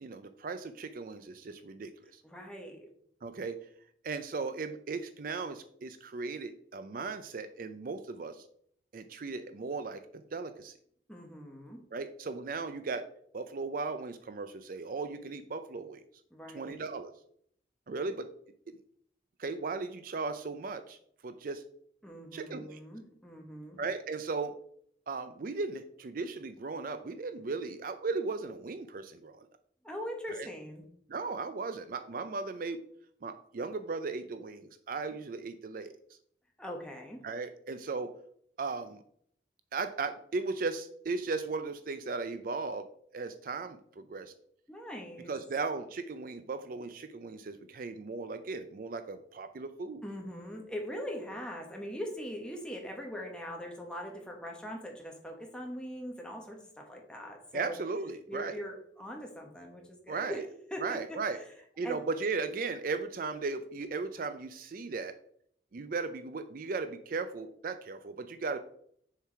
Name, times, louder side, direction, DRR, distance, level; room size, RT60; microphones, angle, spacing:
voice 1, 0.0-2.2 3.2-3.6 4.0-8.5 8.9-10.8 11.9-13.0 13.3-16.0 16.5-17.1 17.9-18.3 19.4-21.0 21.2-21.6 22.3-22.8 23.8-24.6 25.1-29.4 30.3-30.5 31.1-32.8 33.2-35.9 37.2-38.1 38.6-39.0 39.7-42.9 43.1-44.3 45.3-50.0 57.5-58.6 60.1-60.4 60.8-61.4 61.8-65.1 65.7-68.6, right 4 dB, 50° right, 10 dB, 0.4 m, -36 dB
voice 2, 2.2-2.9 11.1-11.8 16.3-16.9 22.0-23.8 29.8-30.8 36.6-37.3 44.7-45.3 50.0-57.7 58.3-60.4 60.7-61.5 61.8-62.0, equal, 5° left, 1 dB, 1.2 m, -41 dB
6.8 x 4.7 x 4.7 m, 0.66 s
head